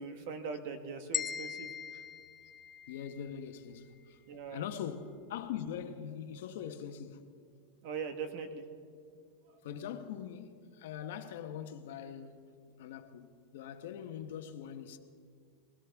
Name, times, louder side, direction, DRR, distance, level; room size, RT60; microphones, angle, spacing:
voice 1, 0.0-1.7 4.3-4.6 7.8-8.6, right 5 dB, 55° right, 1.4 m, -40 dB
sound 1, 1.1-3.3, left 7 dB, 15° left, 0.5 m, -40 dB
voice 2, 2.9-4.2 4.5-7.2 9.6-12.4 12.8-15.0, left 9 dB, 70° left, 1.0 m, -42 dB
21.5 x 17.0 x 3.5 m
supercardioid pair, 170°, 0 cm